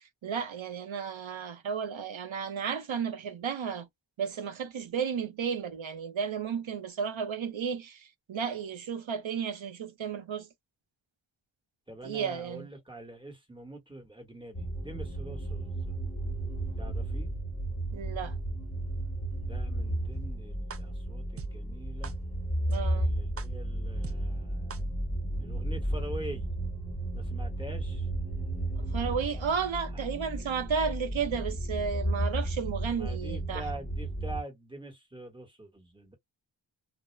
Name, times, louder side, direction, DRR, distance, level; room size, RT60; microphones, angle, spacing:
voice 1, 0.0-3.9 4.2-10.5 12.0-12.7 17.9-18.4 22.7-23.2 28.9-33.7, right 6 dB, 85° right, 0.7 m, -33 dB
voice 2, 11.9-15.9 16.8-17.3 19.4-22.1 22.9-24.9 25.4-26.5 27.1-28.1 29.9-30.4 32.9-36.2, right 1 dB, 10° right, 1.2 m, -45 dB
sound 1, 14.5-34.4, right 1 dB, 10° left, 1.0 m, -33 dB
sound 2, 20.7-20.8 21.4-21.5 22.0-22.1 22.7-22.8 23.4-23.5 24.0-24.1 24.7-24.8, right 6 dB, 35° right, 0.4 m, -40 dB
2.3 x 2.0 x 3.1 m
wide cardioid pair, 55°, 45 cm